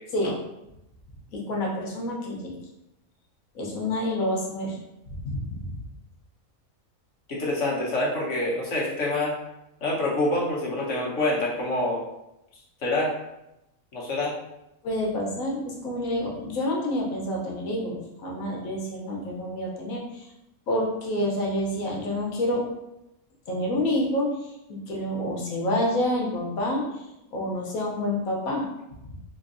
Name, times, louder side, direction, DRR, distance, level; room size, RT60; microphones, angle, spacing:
voice 1, 1.3-2.5 3.5-4.8 5.3-5.6 14.8-20.3 20.7-22.6 23.5-24.3 24.7-26.8 27.3-28.6, left 1 dB, 80° left, -2 dB, 1.3 m, -28 dB
voice 2, 7.3-9.3 9.8-12.0 12.8-13.1 13.9-14.3, left 2 dB, 65° left, -5 dB, 1.3 m, -26 dB
4.4 x 2.7 x 2.5 m, 0.89 s
omnidirectional pair, 1.4 m